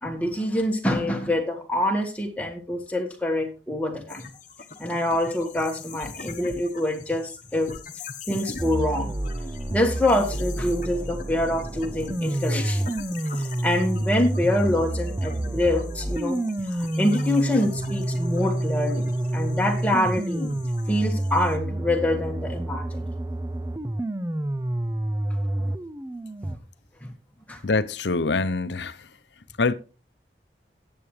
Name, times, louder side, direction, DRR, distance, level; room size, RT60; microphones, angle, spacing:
voice 1, 0.0-4.3 4.8-7.7 8.3-9.1 9.7-12.9 13.4-16.4 16.7-20.6 20.9-23.1 25.6-25.7 26.4-26.5 27.0-27.1 27.5-27.6, left 1 dB, 10° left, 1.7 m, -25 dB
sound 1, 4.1-21.6, left 4 dB, 45° left, 1.1 m, -42 dB
sound 2, 8.6-26.6, right 1 dB, 15° right, 0.4 m, -28 dB
voice 2, 27.6-29.1 29.6-29.7, left 3 dB, 75° left, 0.7 m, -24 dB
14.0 x 8.8 x 3.3 m
head